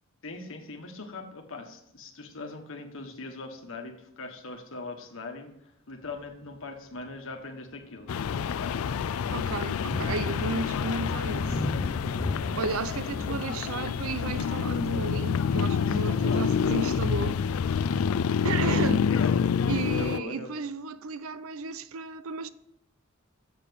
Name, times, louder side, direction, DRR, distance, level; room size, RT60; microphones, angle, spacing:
voice 1, 0.2-5.5 5.9-8.8 12.4-12.6 15.8-16.7 18.6-18.8 19.1-19.3 20.0-20.5, left 3 dB, 65° left, 1.3 m, -41 dB
Thunder, 6.0-6.4 6.9-7.1 7.5-18.1, left 1 dB, 25° left, 0.5 m, -39 dB
sound 1, 8.1-20.2, left 6 dB, 80° left, 0.4 m, -27 dB
voice 2, 9.3-11.6 12.6-17.4 18.4-19.1 19.7-22.5, right 4 dB, 75° right, 0.5 m, -33 dB
7.4 x 6.7 x 5.1 m
head